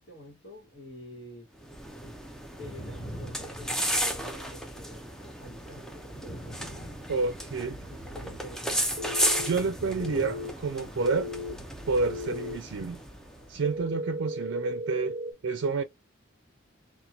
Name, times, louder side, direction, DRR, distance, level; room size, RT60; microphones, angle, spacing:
voice 1, 0.0-1.5 2.0-2.2 2.6-6.6 7.9-8.8, equal, 70° left, 1.0 m, -47 dB
sound 1, 1.6-13.4, equal, 5° left, 0.4 m, -34 dB
sound 2, 2.5-13.9, right 1 dB, 30° left, 1.0 m, -46 dB
voice 2, 7.1-7.9 9.4-11.3 11.9-13.0 13.5-15.2 15.4-15.8, right 4 dB, 85° right, 0.4 m, -29 dB
sound 3, 9.0-9.5 10.0-10.5 11.0-11.5 12.1-12.6 13.6-15.3, left 1 dB, 40° right, 0.6 m, -35 dB
2.8 x 2.2 x 2.3 m
head